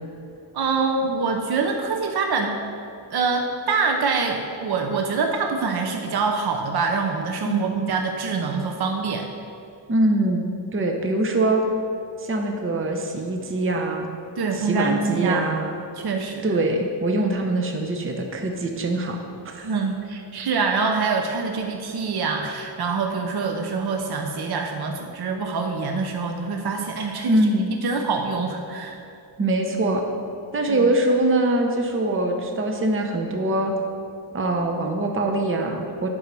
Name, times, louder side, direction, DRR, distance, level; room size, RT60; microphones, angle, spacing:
voice 1, 0.5-2.6 3.1-9.3 14.4-15.5 15.9-16.5 19.6-29.0 30.7-30.9, right 4 dB, 60° right, 3 dB, 0.8 m, -25 dB
voice 2, 9.9-11.6 12.2-14.1 14.5-15.8 16.4-19.2 19.4-19.7 27.3-27.7 29.4-30.1 30.5-33.7 34.3-36.1, right 2 dB, 30° right, 3 dB, 0.7 m, -23 dB
8.4 x 5.4 x 6.1 m, 2.7 s
wide cardioid pair, 160°, 43 cm